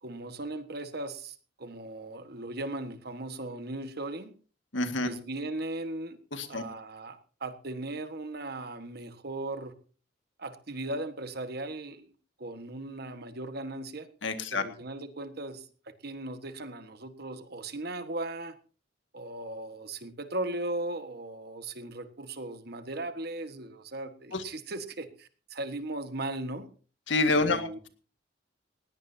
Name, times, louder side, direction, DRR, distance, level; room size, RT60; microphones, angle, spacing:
voice 1, 0.0-4.3 5.0-6.2 6.5-9.7 10.4-12.1 12.4-14.1 14.5-15.7 16.0-18.5 19.1-26.7 27.3-27.8, right 2 dB, 55° right, 9 dB, 1.5 m, -37 dB
voice 2, 4.7-5.1 6.3-6.6 14.2-14.6 24.3-24.4 27.1-27.9, left 3 dB, 80° left, 8 dB, 1.9 m, -27 dB
19.5 x 17.0 x 2.8 m, 0.38 s
head